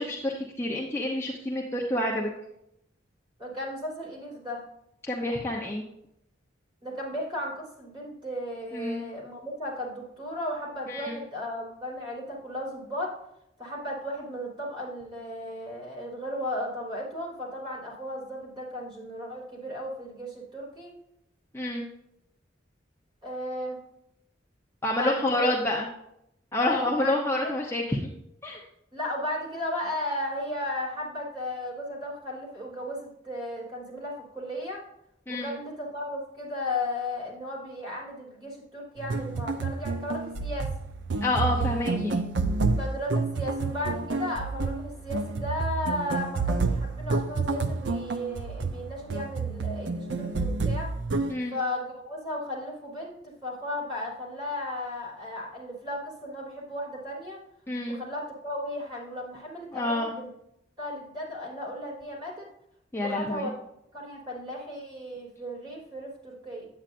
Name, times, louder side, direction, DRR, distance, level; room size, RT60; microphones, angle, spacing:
voice 1, 0.0-2.3 5.0-5.8 8.7-9.0 10.9-11.2 21.5-21.8 24.8-25.9 26.5-28.0 28.4-28.6 35.3-35.5 41.2-42.2 51.3-51.6 57.7-58.0 59.7-60.1 62.9-63.5, left 1 dB, 15° left, -2 dB, 0.8 m, -28 dB
voice 2, 3.4-4.6 6.8-13.1 13.6-20.9 23.2-23.8 24.9-25.5 26.6-27.5 28.9-34.8 35.3-40.7 42.8-50.9 51.5-57.4 57.9-60.3 60.8-62.5 63.0-63.6 63.9-66.7, left 1 dB, 25° right, -5 dB, 3.3 m, -35 dB
sound 1, 39.0-51.3, right 3 dB, 70° right, 0.6 m, -29 dB
8.8 x 8.7 x 2.6 m, 0.77 s
head